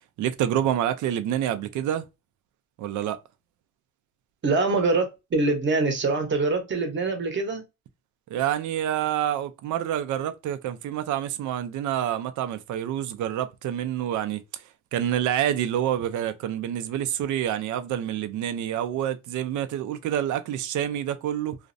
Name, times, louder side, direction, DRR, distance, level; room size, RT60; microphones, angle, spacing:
voice 1, 0.2-2.1 2.8-3.2 8.3-14.6 14.9-21.6, right 10 dB, 75° right, 0.5 m, -27 dB
voice 2, 4.4-7.6, right 3 dB, 40° right, 0.9 m, -24 dB
2.5 x 2.0 x 2.5 m
cardioid pair, 90°, 30 cm